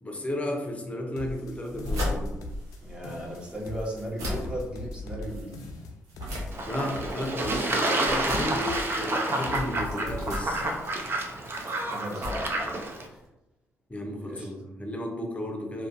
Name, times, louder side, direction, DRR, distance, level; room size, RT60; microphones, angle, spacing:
voice 1, 0.0-2.4 6.7-10.6 13.9-15.9, left 1 dB, 20° left, 3 dB, 0.6 m, -33 dB
sound 1, 1.2-2.8 3.0-4.0 4.3-7.8 8.0-9.0 9.3-11.2, left 1 dB, 75° left, 0.3 m, -41 dB
sound 2, 1.5-13.3, left 1 dB, 75° right, 0.8 m, -38 dB
voice 2, 2.8-5.7 11.5-12.7 13.1-13.2 14.2-14.5, equal, 15° right, -3 dB, 0.9 m, -37 dB
Fowl / Bird / Water, 6.5-13.1, right 2 dB, 40° right, 0.5 m, -29 dB
2.4 x 2.2 x 2.5 m, 0.95 s
supercardioid pair, 50°, 6 cm